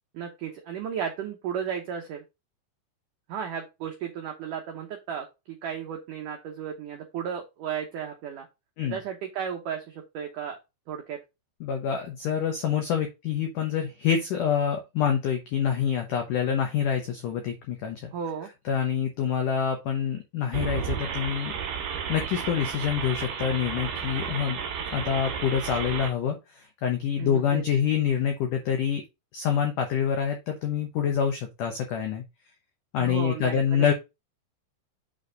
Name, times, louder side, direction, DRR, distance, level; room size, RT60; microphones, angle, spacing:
voice 1, 0.1-2.2 3.3-8.5 8.9-10.6 10.9-11.2 18.1-18.5 27.2-27.6 33.0-33.9, right 8 dB, 85° right, 2 dB, 1.8 m, -34 dB
voice 2, 11.6-18.1 18.7-21.5 22.1-24.6 24.9-29.0 29.3-32.2 32.9-33.9, left 8 dB, 85° left, 4 dB, 1.8 m, -26 dB
sound 1, 20.5-26.1, right 7 dB, 60° right, 3.3 m, -33 dB
8.1 x 4.3 x 3.9 m, 0.24 s
omnidirectional pair, 5.2 m